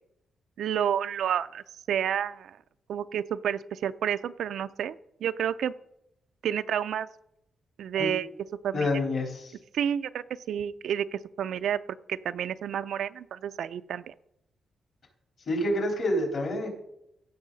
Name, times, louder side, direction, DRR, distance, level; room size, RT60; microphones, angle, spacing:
voice 1, 0.6-2.6 2.9-5.0 5.2-5.7 6.4-7.1 7.8-8.3 8.6-8.9 9.7-11.8 12.1-14.1, right 9 dB, 80° right, 13 dB, 0.4 m, -30 dB
voice 2, 8.7-9.5 15.5-16.7, left 1 dB, 55° left, 0 dB, 3.7 m, -27 dB
16.0 x 6.3 x 4.0 m, 0.79 s
cardioid pair, 135°, 0 cm